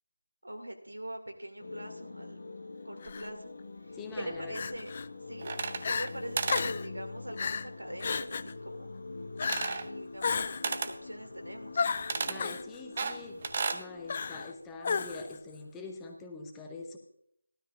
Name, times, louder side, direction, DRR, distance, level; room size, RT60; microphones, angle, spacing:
voice 1, 0.4-2.5 2.8-3.5 3.8-4.9 5.3-5.6 5.9-8.9 9.8-11.9, right 1 dB, 90° right, 4 dB, 2.0 m, -43 dB
sound 1, 1.6-14.5, left 3 dB, 50° left, 1.2 m, -45 dB
Crying sobbing, 3.0-3.3 4.5-5.1 5.5-5.6 5.8-6.1 6.5-6.9 7.4-7.7 8.0-8.5 9.4-9.8 10.2-10.7 11.8-12.6 14.1-14.5 14.8-15.4, left 5 dB, 30° left, 0.3 m, -32 dB
voice 2, 3.9-4.6 12.3-13.5 13.7-17.0, left 3 dB, 10° left, 2 dB, 0.8 m, -44 dB
sound 2, 5.4-6.1 6.4-6.7 9.4-9.9 10.6-11.0 12.1-12.4 13.0-13.8, right 4 dB, 30° right, 0.6 m, -33 dB
15.5 x 12.5 x 2.4 m, 0.71 s
figure-of-eight pair, 165°, 0 cm